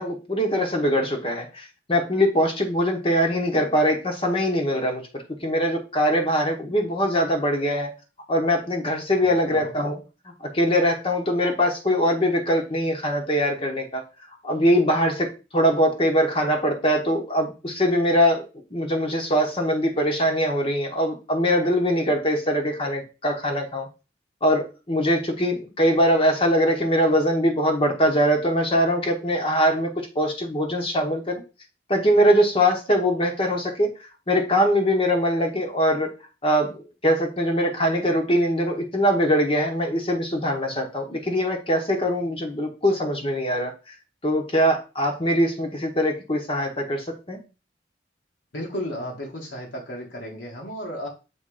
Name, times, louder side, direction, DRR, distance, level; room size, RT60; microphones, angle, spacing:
voice 1, 0.0-7.9 8.3-10.0 10.5-14.0 14.4-18.4 18.7-23.9 24.4-31.4 31.9-33.9 34.3-36.1 36.4-43.7 44.2-47.4, equal, 30° left, 2 dB, 1.1 m, -22 dB
voice 2, 9.2-9.7 48.5-51.1, equal, 80° left, -2 dB, 1.8 m, -34 dB
7.0 x 3.3 x 5.0 m, 0.31 s
head